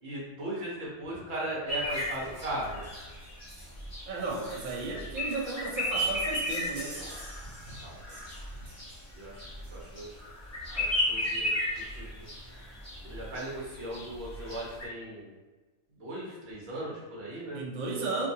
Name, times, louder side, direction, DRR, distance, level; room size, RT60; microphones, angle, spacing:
voice 1, 0.0-2.8 7.0-7.2 7.7-8.0 9.1-9.4 9.7-10.2 10.7-12.2 13.0-15.3 16.0-17.6, right 1 dB, 50° right, -5 dB, 1.0 m, -38 dB
sound 1, 1.7-14.9, left 1 dB, 25° left, 0.3 m, -34 dB
sound 2, 1.9-10.2 11.3-11.4 11.7-11.8 12.1-12.2 12.6-13.2 13.6-13.7, right 2 dB, 70° right, 1.0 m, -51 dB
voice 2, 4.1-7.0 17.5-18.3, right 3 dB, 85° right, -1 dB, 0.4 m, -34 dB
2.6 x 2.5 x 2.6 m, 1.2 s
omnidirectional pair, 1.5 m